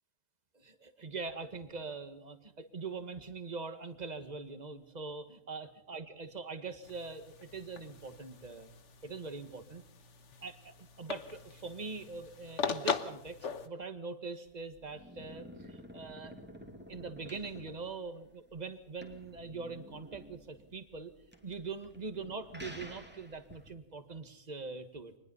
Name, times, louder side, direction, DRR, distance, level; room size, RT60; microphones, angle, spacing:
voice 1, 0.5-8.7 9.0-9.8 10.4-13.4 13.6-16.3 16.9-21.1 21.4-25.2, right 4 dB, 35° right, 10 dB, 1.7 m, -43 dB
sound 1, 6.8-13.7, left 6 dB, 65° left, 1.5 m, -40 dB
sound 2, 14.5-23.7, equal, 10° right, 2.5 m, -51 dB
25.0 x 20.5 x 5.5 m, 0.80 s
omnidirectional pair, 1.3 m